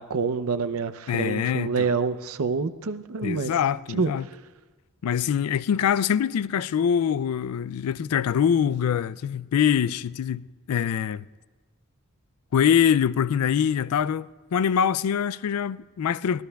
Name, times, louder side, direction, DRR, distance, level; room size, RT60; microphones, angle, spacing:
voice 1, 0.0-3.6 3.9-4.1, right 4 dB, 75° right, 0.6 m, -27 dB
voice 2, 1.1-1.9 3.2-4.2 5.0-11.3 12.5-16.4, left 8 dB, 85° left, 0.3 m, -24 dB
24.0 x 18.5 x 2.3 m
head